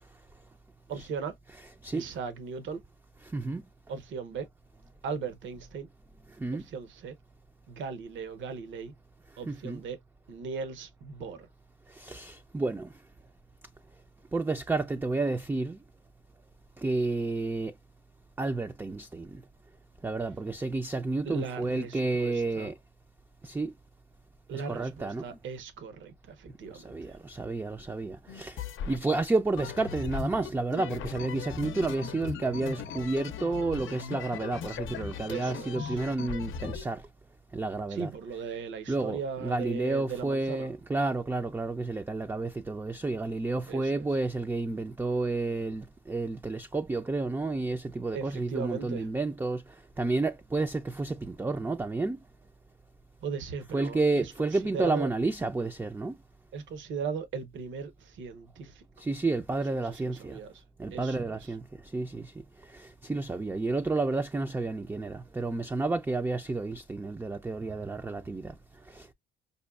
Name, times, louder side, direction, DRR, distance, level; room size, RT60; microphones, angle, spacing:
voice 1, 0.9-1.3 1.9-2.8 3.9-4.5 5.0-5.9 6.5-7.1 7.7-8.9 9.4-10.0 10.3-11.5 21.2-22.7 24.5-27.0 35.3-36.0 37.9-40.7 43.7-44.1 48.1-49.1 53.2-55.1 56.5-58.8 59.7-60.6 60.9-61.5, right 5 dB, 70° right, 0.9 m, -38 dB
voice 2, 3.3-3.6 6.4-6.6 9.5-9.8 11.9-12.9 14.3-15.8 16.8-17.7 18.4-19.4 20.0-22.8 23.4-23.7 24.5-25.2 26.7-28.6 28.9-37.1 37.5-38.1 38.9-52.2 53.7-56.2 59.0-60.4 60.8-62.3 62.6-68.6 68.9-69.1, right 3 dB, 10° right, 0.4 m, -31 dB
sound 1, 28.3-29.0 29.6-36.8, left 7 dB, 75° left, 0.6 m, -38 dB
5.2 x 2.2 x 2.2 m
cardioid pair, 90°, 20 cm